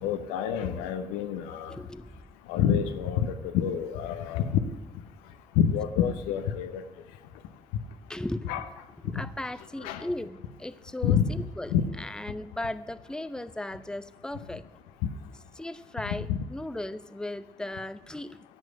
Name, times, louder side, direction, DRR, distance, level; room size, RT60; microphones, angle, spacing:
voice 1, 0.0-1.7 2.5-4.5 5.6-6.8 8.5-8.6 9.8-10.0 11.0-11.2 11.7-11.8 16.1-16.2, left 8 dB, 80° left, 9 dB, 0.7 m, -27 dB
voice 2, 1.7-2.2 8.1-8.5 9.0-14.6 15.6-18.4, left 1 dB, 5° left, 13 dB, 0.7 m, -37 dB
11.0 x 7.8 x 7.8 m, 1.2 s
hypercardioid pair, 40°, 14 cm